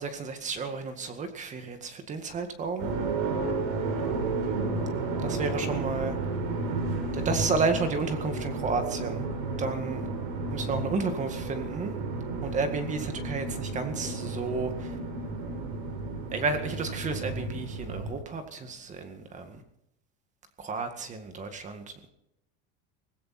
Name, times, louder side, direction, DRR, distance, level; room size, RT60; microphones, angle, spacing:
voice 1, 0.0-2.9 5.2-6.2 7.1-9.3 9.6-10.1 10.5-11.9 12.4-15.0 16.3-19.6 20.6-22.1, right 4 dB, 25° right, 8 dB, 1.9 m, -32 dB
sound 1, 2.8-18.1, right 3 dB, 75° right, 6.2 m, -32 dB
18.5 x 17.0 x 4.3 m, 0.78 s
cardioid pair, 160°, 30 cm